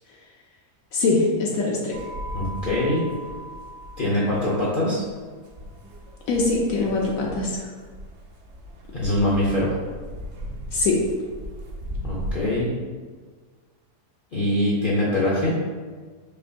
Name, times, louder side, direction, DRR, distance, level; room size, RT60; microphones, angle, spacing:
voice 1, 0.9-2.0 6.3-7.7 10.7-11.0, left 3 dB, 70° left, -2 dB, 0.9 m, -22 dB
sound 1, 1.9-12.5, equal, 65° right, 0.7 m, -37 dB
voice 2, 2.3-3.1 4.0-5.0 8.9-9.7 12.0-12.8 14.3-15.6, left 1 dB, 50° left, -7 dB, 0.6 m, -23 dB
4.3 x 3.0 x 2.6 m, 1.5 s
omnidirectional pair, 1.7 m